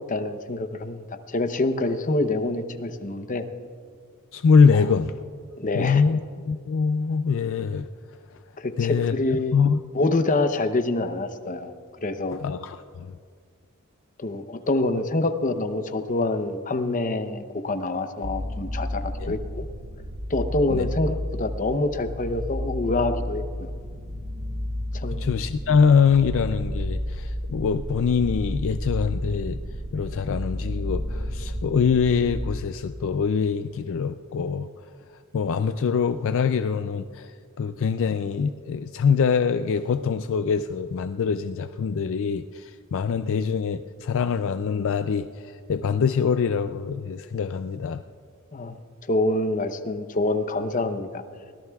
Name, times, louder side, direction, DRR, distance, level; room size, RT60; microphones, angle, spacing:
voice 1, 0.1-3.4 4.7-4.9 5.6-6.0 8.6-9.6 9.9-11.7 12.0-12.4 14.2-19.7 20.3-23.7 24.9-25.2 48.5-48.8 49.1-51.2, left 2 dB, 35° left, 8 dB, 0.7 m, -26 dB
voice 2, 4.3-5.1 5.7-6.2 6.4-7.9 8.8-9.1 9.5-9.8 12.3-13.1 19.2-19.4 20.7-20.9 25.1-29.6 29.9-34.7 35.3-37.3 37.6-48.0, left 6 dB, 60° left, 9 dB, 0.4 m, -23 dB
sound 1, 18.2-32.6, equal, 80° right, 2.3 m, -31 dB
23.5 x 17.5 x 2.3 m, 2.1 s
head